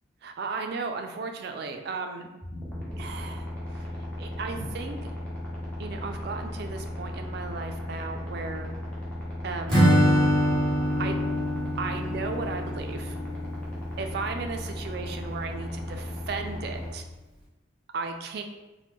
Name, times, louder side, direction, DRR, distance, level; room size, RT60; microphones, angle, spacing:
voice 1, 0.2-2.3 3.0-3.9 4.2-5.0 5.8-8.7 9.4-9.9 11.0-11.2 11.8-13.2 14.0-17.0 17.9-18.4, right 4 dB, 50° right, 5 dB, 0.3 m, -35 dB
sound 1, 2.4-16.9, left 1 dB, 5° left, 0.6 m, -36 dB
Acoustic guitar / Strum, 9.7-13.6, equal, 25° right, 1.0 m, -24 dB
3.0 x 2.1 x 3.4 m, 1.1 s
head